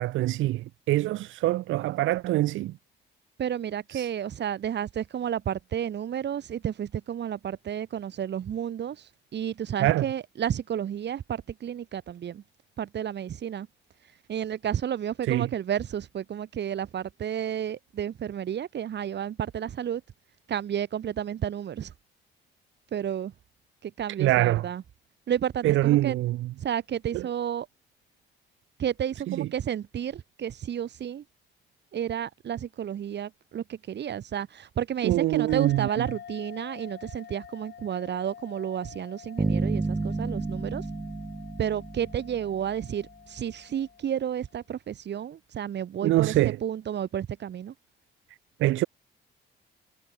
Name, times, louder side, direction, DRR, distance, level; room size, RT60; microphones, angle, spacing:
voice 1, 0.0-2.7 3.9-4.1 9.8-10.1 15.2-15.5 24.2-24.6 25.6-26.5 27.1-27.3 29.3-29.5 35.0-36.1 46.0-46.6 48.6-48.9, right 16 dB, 80° right, 0.6 m, -24 dB
voice 2, 3.4-12.4 12.8-13.7 14.3-20.0 20.5-21.9 22.9-23.3 23.8-24.8 25.3-26.2 26.6-27.7 28.8-31.2 31.9-40.8 41.6-47.7, right 9 dB, 60° right, 2.9 m, -31 dB
sound 1, 35.5-44.5, left 9 dB, 60° left, 5.7 m, -47 dB
sound 2, 39.4-42.8, right 3 dB, 15° right, 0.7 m, -30 dB
cardioid pair, 90°, 20 cm